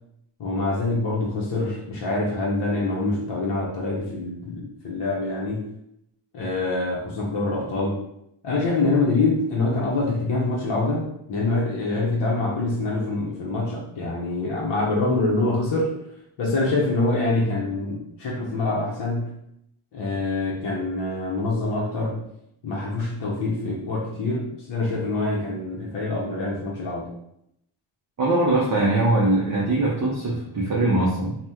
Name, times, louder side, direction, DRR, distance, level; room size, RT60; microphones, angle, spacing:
voice 1, 0.4-5.7 6.3-8.0 8.4-15.9 16.4-19.3 19.9-22.2 22.6-27.1, left 2 dB, 55° left, -4 dB, 0.7 m, -25 dB
voice 2, 28.2-31.4, right 2 dB, 40° right, -4 dB, 0.5 m, -21 dB
2.7 x 2.1 x 3.5 m, 0.78 s
wide cardioid pair, 170°, 50 cm